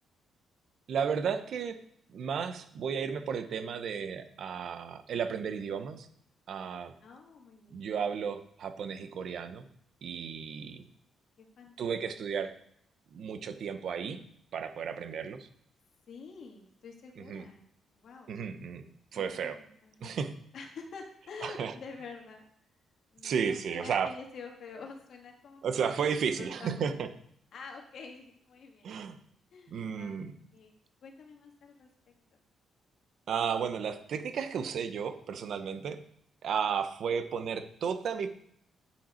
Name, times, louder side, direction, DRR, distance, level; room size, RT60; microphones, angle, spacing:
voice 1, 0.9-1.8 2.1-6.1 6.5-6.9 7.7-9.7 10.0-10.8 11.8-12.5 13.1-14.2 14.5-15.5 17.2-17.5 18.3-18.9 19.1-19.6 20.0-20.3 21.4-21.7 23.2-24.1 25.6-27.1 28.8-29.2 29.7-30.3 33.3-36.0 36.4-38.3, right 7 dB, 55° right, 9 dB, 0.8 m, -33 dB
voice 2, 7.0-8.0 11.4-12.0 16.1-17.6 17.9-18.3 19.1-20.1 20.5-22.4 23.1-26.0 26.4-26.9 27.5-28.9 29.5-30.7 31.0-31.9, left 4 dB, 55° left, 2 dB, 1.8 m, -48 dB
8.8 x 7.6 x 4.4 m, 0.68 s
cardioid pair, 160°, 0 cm